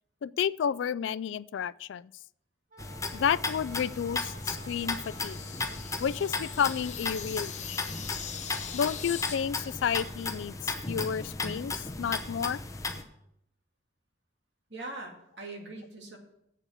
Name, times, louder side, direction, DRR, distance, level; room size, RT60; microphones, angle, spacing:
voice 1, 0.2-2.0 3.1-5.4 6.0-7.9 8.7-11.7 12.0-12.6, left 8 dB, 75° left, 0.3 m, -31 dB
Wind instrument woodwind instrument, 2.7-7.0, right 1 dB, 45° right, 1.3 m, -52 dB
sound 1, 2.8-13.0, left 3 dB, 15° left, 0.7 m, -36 dB
sound 2, 3.2-9.4, left 8 dB, 40° left, 1.0 m, -42 dB
voice 2, 14.7-16.2, right 2 dB, 65° right, 2.2 m, -41 dB
8.2 x 7.1 x 7.1 m
head